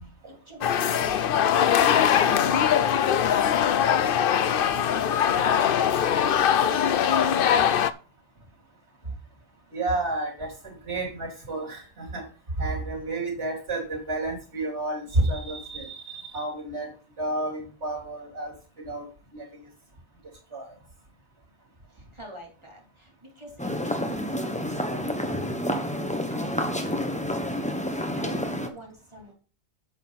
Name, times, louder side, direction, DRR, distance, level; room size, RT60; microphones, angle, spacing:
voice 1, 0.0-1.4 1.6-3.5 4.0-6.8 7.1-7.8 21.9-25.6 25.9-27.2 27.9-29.3, equal, 25° right, -1 dB, 3.2 m, -45 dB
sound 1, 0.6-7.9, left 9 dB, 60° left, 0.7 m, -22 dB
voice 2, 9.7-12.3 12.6-16.9 17.2-18.5 18.8-19.1 19.3-19.5 20.5-20.7, right 2 dB, 80° right, -6 dB, 3.6 m, -30 dB
sound 2, 23.6-28.7, equal, 5° left, 1.0 m, -29 dB
8.8 x 8.1 x 4.1 m, 0.36 s
omnidirectional pair, 1.2 m